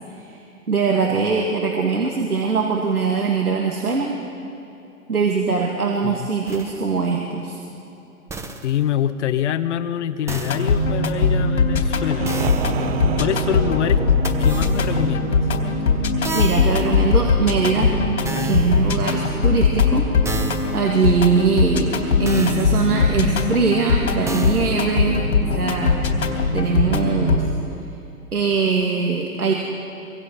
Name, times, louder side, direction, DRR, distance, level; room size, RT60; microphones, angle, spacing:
voice 1, 0.7-4.1 5.1-7.6 16.3-17.9 18.4-20.1 20.3-20.4 20.7-21.9 22.2-26.0 26.5-27.5 28.3-29.5, right 5 dB, 90° right, -1 dB, 2.7 m, -21 dB
sound 1, 6.5-6.8 8.3-8.8 10.3-10.8 12.2-12.8 14.2-15.0 16.2-16.9 18.2-18.9 20.2-20.8 22.2-22.8 24.3-24.9, right 3 dB, 5° right, 0.9 m, -32 dB
voice 2, 8.6-12.3 12.8-14.0 14.4-15.4, left 10 dB, 55° left, 11 dB, 1.2 m, -25 dB
sound 2, 10.4-27.4, left 4 dB, 75° left, 3.6 m, -20 dB
sound 3, 11.4-17.1, right 10 dB, 45° right, 0.7 m, -31 dB
25.0 x 23.5 x 5.7 m, 2.8 s
hypercardioid pair, 125°, 43 cm